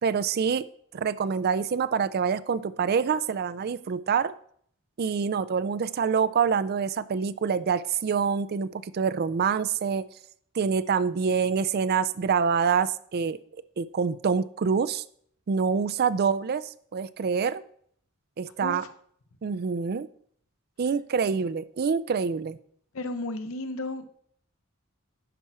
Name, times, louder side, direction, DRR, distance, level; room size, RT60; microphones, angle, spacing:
voice 1, 0.0-0.6 0.9-4.3 5.0-10.0 10.5-13.4 13.8-15.0 15.5-17.6 18.4-18.8 19.4-20.1 20.8-22.6, right 6 dB, 45° right, 16 dB, 0.4 m, -26 dB
voice 2, 18.6-18.9 22.9-24.1, left 2 dB, 70° left, 9 dB, 0.8 m, -33 dB
10.0 x 6.1 x 4.3 m, 0.62 s
head